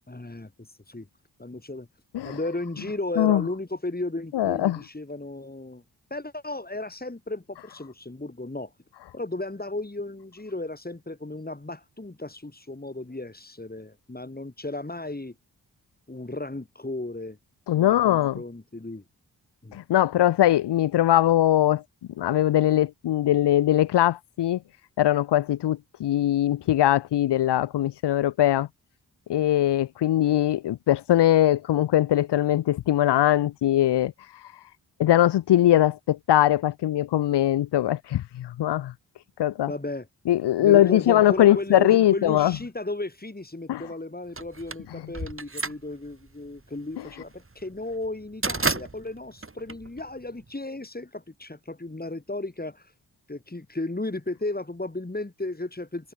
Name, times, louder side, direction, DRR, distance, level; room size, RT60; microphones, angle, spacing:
voice 1, 0.1-1.1 1.4-1.9 2.2-5.8 6.1-8.7 9.1-15.3 16.1-17.4 17.8-19.0 19.6-19.8 39.7-40.1 40.6-52.9 53.3-56.1, left 2 dB, 20° left, 7.3 m, -34 dB
voice 2, 4.3-4.8 17.7-18.4 19.7-21.8 22.2-24.6 25.0-28.7 29.3-34.6 35.0-38.9 39.4-39.7 40.3-42.6 43.7-43.8 44.9-45.0 47.0-47.1, left 13 dB, 80° left, 0.9 m, -21 dB
sound 1, 44.4-50.5, right 3 dB, 30° right, 4.3 m, -32 dB
cardioid pair, 45°, 41 cm